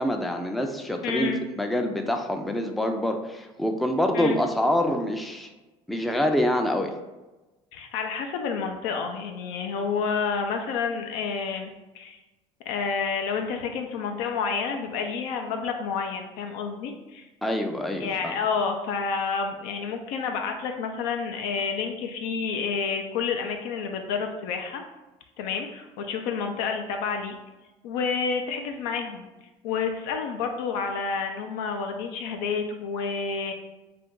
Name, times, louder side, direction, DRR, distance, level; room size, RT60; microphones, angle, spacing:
voice 1, 0.0-5.5 5.9-6.9 17.4-18.3, left 1 dB, ahead, 4 dB, 0.3 m, -26 dB
voice 2, 1.0-1.4 4.1-4.4 7.7-11.7 11.9-12.2 12.7-17.3 18.0-24.8 25.4-27.4 27.8-29.3 29.6-33.5, left 5 dB, 85° left, 5 dB, 0.4 m, -29 dB
2.5 x 2.2 x 3.6 m, 1.1 s
supercardioid pair, 95°, 13 cm